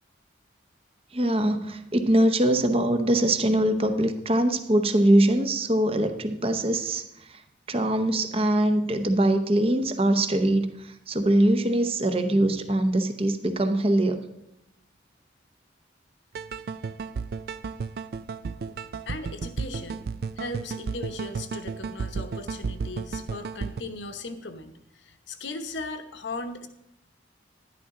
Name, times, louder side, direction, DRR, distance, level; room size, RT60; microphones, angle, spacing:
voice 1, 1.1-7.0 7.7-14.2, right 1 dB, 30° right, 8 dB, 0.8 m, -22 dB
sound 1, 16.4-23.8, right 5 dB, 55° right, 0.3 m, -33 dB
voice 2, 19.1-20.1 20.4-26.7, left 2 dB, 75° left, 7 dB, 1.0 m, -37 dB
11.5 x 11.0 x 3.7 m, 0.82 s
head